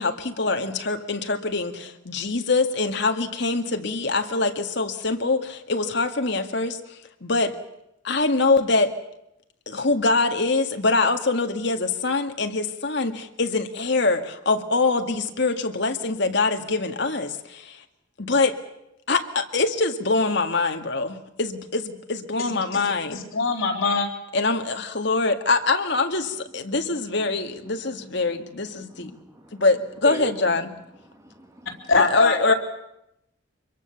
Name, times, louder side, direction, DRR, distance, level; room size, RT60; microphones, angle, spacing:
voice 1, 0.0-6.8 7.2-7.6 8.0-8.9 9.7-17.8 18.2-18.6 19.1-23.2 24.3-29.1 29.5-30.7 31.9-32.5, left 3 dB, 55° left, 6 dB, 1.9 m, -24 dB
voice 2, 22.4-24.1 31.9-32.5, left 4 dB, 75° left, 2 dB, 3.9 m, -23 dB
voice 3, 26.9-27.3 27.6-29.7 30.0-30.4 31.0-31.9, right 1 dB, 15° right, 4 dB, 2.4 m, -41 dB
25.0 x 22.5 x 7.1 m, 0.83 s
head